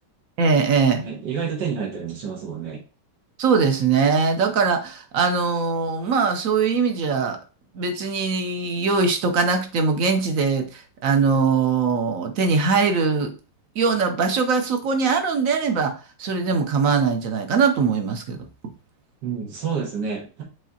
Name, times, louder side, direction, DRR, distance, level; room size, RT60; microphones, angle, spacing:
voice 1, 0.4-1.0 3.4-7.4 7.7-13.3 13.8-18.5, right 5 dB, 60° right, 7 dB, 1.0 m, -21 dB
voice 2, 1.0-2.8 19.2-20.4, right 6 dB, 85° right, 0 dB, 1.8 m, -29 dB
4.9 x 3.7 x 2.8 m, 0.34 s
omnidirectional pair, 1.8 m